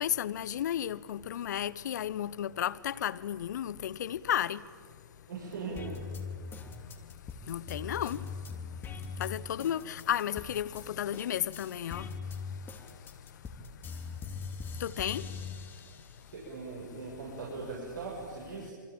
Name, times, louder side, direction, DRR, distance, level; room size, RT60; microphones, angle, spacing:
voice 1, 0.0-4.6 6.6-6.7 7.0-7.1 7.5-8.3 8.9-13.0 14.8-15.4, left 10 dB, 60° left, 0.8 m, -34 dB
voice 2, 5.3-6.0 16.3-18.7, right 4 dB, 70° right, 7.1 m, -40 dB
sound 1, 5.8-10.8 11.1-16.3 16.8-17.8, left 5 dB, 20° left, 2.9 m, -41 dB
27.5 x 24.0 x 8.9 m
figure-of-eight pair, 115°, 11 cm